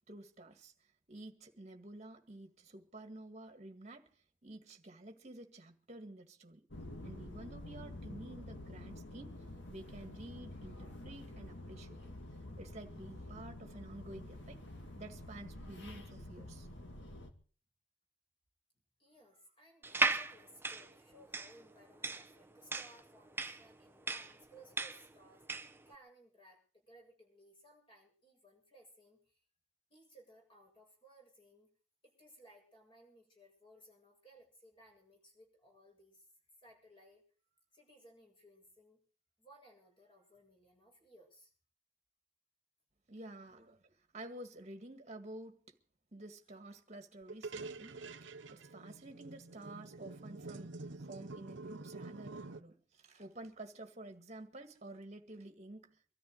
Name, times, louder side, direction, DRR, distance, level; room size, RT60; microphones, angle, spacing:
voice 1, 0.1-0.7 1.1-4.1 4.4-6.6 7.0-9.4 9.7-12.1 12.6-14.6 15.0-16.7 43.1-43.8 44.1-45.7 46.1-56.0, right 1 dB, 35° right, 1.9 m, -51 dB
sound 1, 6.7-17.3, left 1 dB, 60° left, 2.1 m, -48 dB
voice 2, 19.0-29.4 29.9-31.7 32.0-36.2 36.6-37.2 37.7-39.0 39.4-41.5, right 1 dB, 25° left, 7.5 m, -61 dB
sound 2, 19.8-25.8, right 3 dB, 10° right, 0.7 m, -36 dB
sound 3, 47.3-52.6, right 3 dB, 60° right, 0.9 m, -47 dB
24.0 x 13.5 x 4.0 m
head